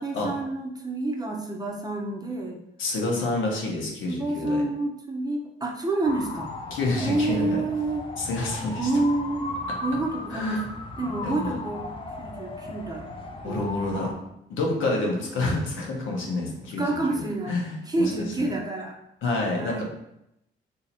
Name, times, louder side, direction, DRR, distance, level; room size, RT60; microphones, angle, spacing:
voice 1, 0.0-2.6 4.0-6.5 7.0-8.1 8.8-9.5 9.8-10.6 11.0-11.8 12.2-13.1 13.4-13.9 16.8-17.6 17.9-19.0 19.6-19.8, right 2 dB, 20° right, 0 dB, 0.6 m, -28 dB
voice 2, 2.8-4.6 6.7-7.6 8.2-8.9 10.3-10.6 11.0-11.5 13.4-14.1 14.5-16.8 17.5-18.1 19.2-19.8, left 2 dB, 85° left, -1 dB, 0.9 m, -28 dB
sound 1, 6.0-14.1, left 3 dB, 25° left, 0.5 m, -36 dB
2.8 x 2.7 x 4.2 m, 0.81 s
cardioid pair, 90°, 20 cm